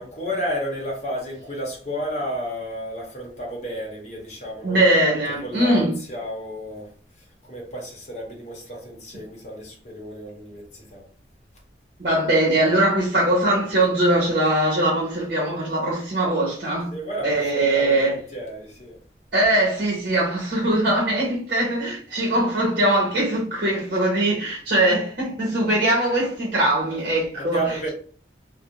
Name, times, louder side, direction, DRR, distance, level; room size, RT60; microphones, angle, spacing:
voice 1, 0.0-6.9 7.2-11.0 16.9-19.0 27.3-27.9, equal, 40° left, 0.8 m, -32 dB
voice 2, 4.6-5.9 12.0-16.9 17.2-18.1 19.3-27.6, right 1 dB, 55° right, 0.8 m, -21 dB
2.4 x 2.0 x 2.9 m
head